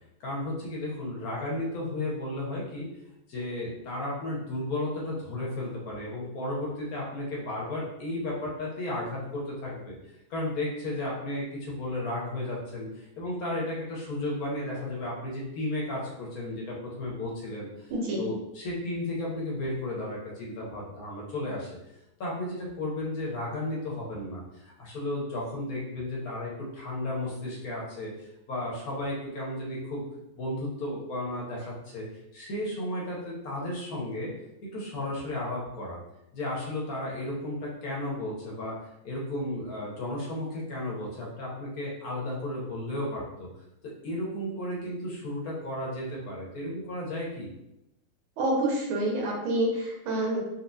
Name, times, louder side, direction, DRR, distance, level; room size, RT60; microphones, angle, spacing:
voice 1, 0.2-2.9 3.3-10.0 10.3-17.9 18.2-21.7 22.2-30.0 30.4-32.1 32.3-34.3 34.6-36.0 36.3-38.8 39.0-43.5 43.8-47.5, left 1 dB, 60° left, -4 dB, 1.1 m, -34 dB
voice 2, 17.9-18.3 48.4-50.4, right 1 dB, 80° right, -1 dB, 1.6 m, -27 dB
4.1 x 2.4 x 2.7 m, 0.87 s
omnidirectional pair, 2.2 m